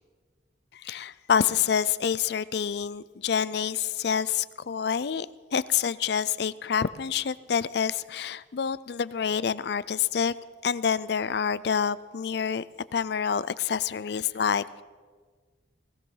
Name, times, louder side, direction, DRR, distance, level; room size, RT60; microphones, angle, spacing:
voice 1, 0.7-5.3 5.5-10.3 10.6-12.6 12.9-14.8, left 7 dB, 60° left, 18 dB, 0.4 m, -27 dB
19.5 x 16.5 x 3.9 m, 1.5 s
head